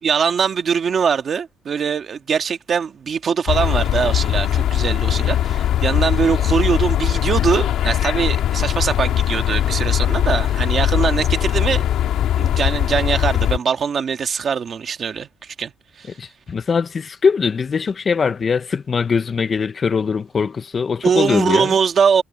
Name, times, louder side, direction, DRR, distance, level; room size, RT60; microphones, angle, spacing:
voice 1, 0.0-11.9 12.4-16.2 21.0-22.2, right 6 dB, 30° right, 1.7 m, -22 dB
sound 1, 3.5-13.6, left 11 dB, 55° left, 2.3 m, -20 dB
voice 2, 16.2-21.7, left 5 dB, 25° left, 0.3 m, -21 dB
cardioid pair, 175°, 0 cm